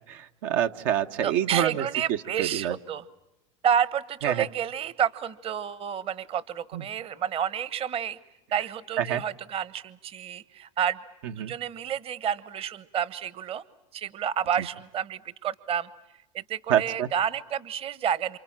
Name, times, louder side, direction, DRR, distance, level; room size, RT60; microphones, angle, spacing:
voice 1, 0.1-1.8 2.4-2.7 4.2-4.4 6.7-6.8 9.0-9.2 11.4-11.5 16.7-17.1, right 10 dB, 65° right, 7 dB, 1.2 m, -26 dB
voice 2, 1.2-3.1 3.6-8.2 8.5-11.0 11.4-13.6 13.9-15.9 16.3-18.4, right 8 dB, 35° right, 18 dB, 1.2 m, -30 dB
29.0 x 27.0 x 7.4 m, 0.93 s
supercardioid pair, 115°, 17 cm